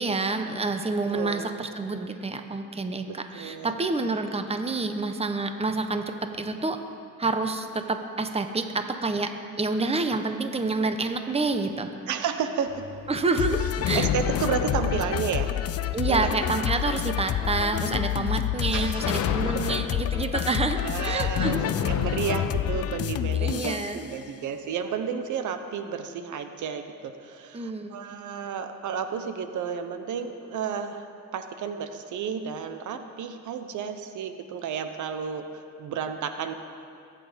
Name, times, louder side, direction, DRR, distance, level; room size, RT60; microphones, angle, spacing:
voice 1, 0.0-6.8 7.2-11.9 13.1-14.1 15.9-21.6 23.3-24.0 27.5-28.0, right 3 dB, 20° right, 7 dB, 1.1 m, -28 dB
voice 2, 1.1-1.5 3.3-3.7 12.1-12.8 13.9-15.5 16.1-16.3 18.7-19.0 19.5-19.8 20.8-31.1 31.3-36.5, right 7 dB, 75° right, 8 dB, 1.0 m, -32 dB
sound 1, 12.7-23.1, left 8 dB, 70° left, 1.0 m, -34 dB
sound 2, 13.4-24.0, left 11 dB, 55° left, 0.5 m, -28 dB
21.5 x 8.8 x 5.2 m, 2.4 s
cardioid pair, 90°, 30 cm